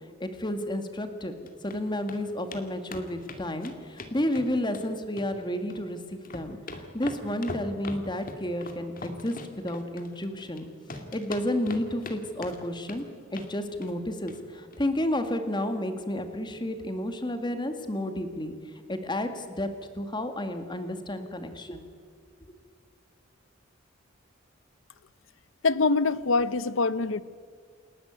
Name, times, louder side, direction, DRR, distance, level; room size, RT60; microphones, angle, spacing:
voice 1, 0.2-1.3 1.6-10.7 11.1-13.1 13.3-18.5 18.9-21.8, left 1 dB, 20° left, 7 dB, 1.9 m, -31 dB
sound 1, 1.2-1.8 2.1-2.2 2.5-2.6 2.9-4.9 5.2-5.8 6.1-10.6 10.9-12.2 12.4-13.0 13.3-13.5 13.8-14.0 14.3-14.4 14.7-14.8, left 2 dB, 45° left, 2.3 m, -41 dB
voice 2, 25.6-27.2, left 3 dB, 65° left, 17 dB, 0.7 m, -24 dB
28.5 x 12.0 x 9.5 m, 2.1 s
head